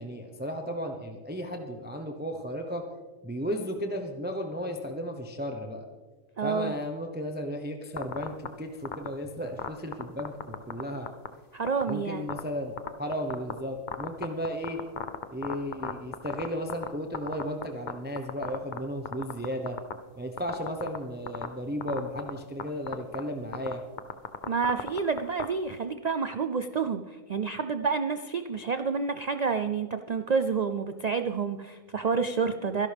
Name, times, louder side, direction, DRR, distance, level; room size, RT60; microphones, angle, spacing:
voice 1, 0.0-2.8 3.2-5.8 6.4-11.1 11.9-14.8 15.3-19.8 20.2-23.8, equal, 10° right, 4 dB, 0.9 m, -34 dB
voice 2, 6.4-6.7 11.5-12.3 24.5-32.9, right 5 dB, 75° right, 9 dB, 0.3 m, -29 dB
sound 1, 8.0-8.5 8.8-9.1 9.6-10.8 11.1-11.3 11.7-11.9 12.3-12.4 12.8-13.5 13.9-16.9 17.1-17.9 18.2-18.8 19.1-19.9 20.4-21.0 21.3-21.5 21.8-22.3 22.6-22.7 22.9-23.2 23.5-25.4, left 7 dB, 45° left, 0.7 m, -32 dB
25.0 x 11.5 x 3.5 m, 1.4 s
omnidirectional pair, 1.4 m